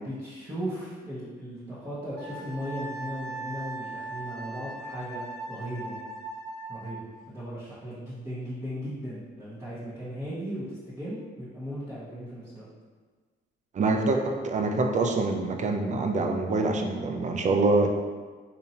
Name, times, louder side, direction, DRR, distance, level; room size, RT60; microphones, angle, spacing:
voice 1, 0.0-5.2 5.5-6.0 6.7-12.7, equal, 15° right, -11 dB, 1.0 m, -37 dB
Wind instrument woodwind instrument, 2.2-7.0, right 2 dB, 20° left, 1.1 m, -39 dB
voice 2, 13.7-17.9, right 3 dB, 35° right, 4 dB, 0.5 m, -25 dB
4.1 x 2.7 x 2.7 m, 1.4 s
cardioid pair, 90°, 20 cm